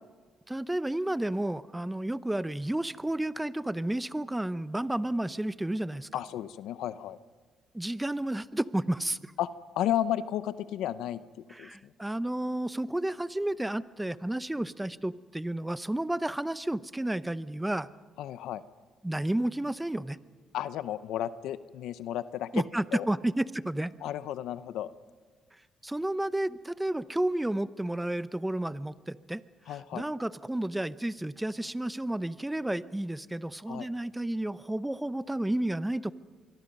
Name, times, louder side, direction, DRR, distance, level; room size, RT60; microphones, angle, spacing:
voice 1, 0.5-6.2 7.7-9.3 11.5-17.9 19.0-20.2 22.5-23.9 25.8-29.4 29.7-36.1, right 1 dB, 10° right, 15 dB, 0.7 m, -31 dB
voice 2, 6.1-7.2 9.4-9.5 9.7-11.2 11.6-11.9 18.2-18.6 20.5-22.6 22.9-23.1 24.0-24.9 29.7-30.0 33.7-33.9, left 12 dB, 85° left, 14 dB, 0.7 m, -33 dB
25.0 x 22.5 x 5.4 m, 1.5 s
cardioid pair, 90°, 0 cm